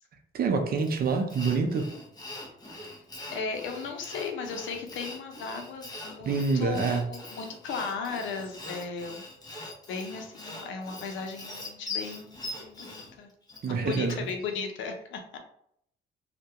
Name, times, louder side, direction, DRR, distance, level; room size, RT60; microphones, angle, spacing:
voice 1, 0.3-1.9 6.3-7.1 13.6-14.2, right 4 dB, 50° right, 5 dB, 0.5 m, -26 dB
Sawing, 0.8-14.4, left 2 dB, 20° left, 0.7 m, -42 dB
voice 2, 3.3-9.3 9.9-13.3 13.8-15.4, left 5 dB, 75° left, 4 dB, 0.5 m, -36 dB
2.2 x 2.1 x 2.7 m, 0.70 s
cardioid pair, 90°, 20 cm